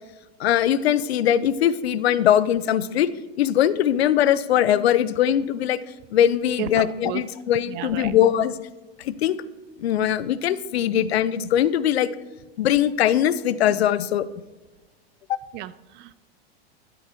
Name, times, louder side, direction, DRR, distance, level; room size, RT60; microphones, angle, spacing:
voice 1, 0.4-3.1 3.4-5.8 6.1-8.6 9.0-9.4 9.8-12.1 12.6-14.3 15.3-15.4, left 10 dB, 80° left, 16 dB, 0.7 m, -21 dB
voice 2, 6.6-7.2 7.7-8.1 15.5-16.1, right 14 dB, 35° right, 16 dB, 0.5 m, -33 dB
12.5 x 8.1 x 4.5 m, 1.2 s
hypercardioid pair, 115°, 31 cm